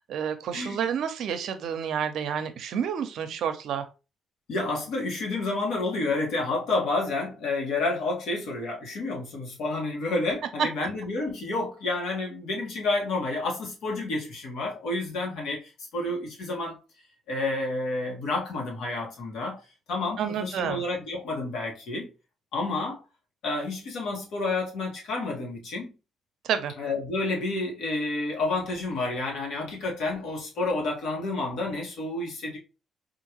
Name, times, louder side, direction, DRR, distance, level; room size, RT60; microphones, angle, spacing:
voice 1, 0.1-3.8 20.2-20.8 26.4-26.7, right 8 dB, 75° right, 0.6 m, -29 dB
voice 2, 4.5-15.6 15.9-16.8 17.3-19.6 19.9-22.1 22.5-23.0 23.4-25.9 26.8-32.6, left 2 dB, 80° left, 1.2 m, -30 dB
3.7 x 2.5 x 2.9 m
cardioid pair, 90°, 0 cm